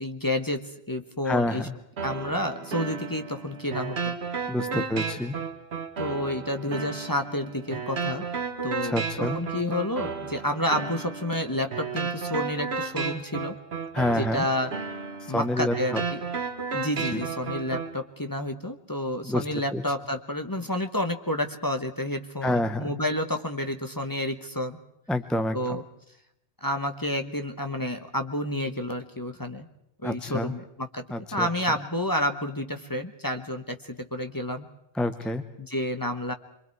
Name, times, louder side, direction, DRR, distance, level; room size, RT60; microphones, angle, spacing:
voice 1, 0.0-1.7 2.0-4.2 4.7-4.8 6.0-8.2 8.6-13.5 14.2-14.7 15.3-16.2 16.7-24.8 25.5-25.8 26.6-29.7 30.0-31.0 31.3-34.7 35.6-36.3, left 1 dB, 20° left, 6 dB, 1.1 m, -30 dB
voice 2, 1.2-1.7 4.5-5.4 8.8-9.4 13.9-14.4 15.2-16.0 17.0-17.2 19.2-19.8 22.4-22.9 25.1-25.8 30.0-30.5 31.1-31.8 34.9-35.4, left 1 dB, ahead, 9 dB, 0.9 m, -28 dB
sound 1, 2.0-18.0, right 5 dB, 65° right, 1.5 m, -33 dB
26.5 x 23.5 x 4.7 m, 0.78 s
omnidirectional pair, 1.2 m